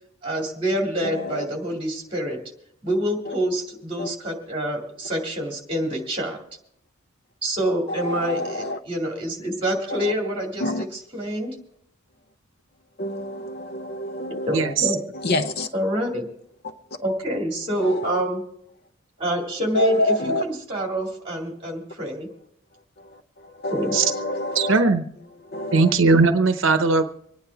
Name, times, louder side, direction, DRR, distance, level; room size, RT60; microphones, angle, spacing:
voice 1, 0.2-2.4 2.8-6.4 7.4-11.5 14.5-15.0 15.7-16.3 17.0-18.4 19.2-22.3 23.7-23.9, right 1 dB, 25° right, 1 dB, 2.4 m, -26 dB
voice 2, 1.0-1.4 3.3-3.4 4.0-4.1 7.9-8.8 9.9-10.1 10.6-10.8 13.0-14.7 15.1-15.7 17.8-18.2 19.7-20.4 23.0-24.8 25.5-25.9, left 2 dB, 50° left, 9 dB, 0.7 m, -27 dB
voice 3, 14.5-14.9 23.9-24.0 24.5-25.0 25.7-27.0, right 4 dB, 65° right, 8 dB, 0.8 m, -18 dB
25.5 x 9.6 x 3.5 m, 0.74 s
head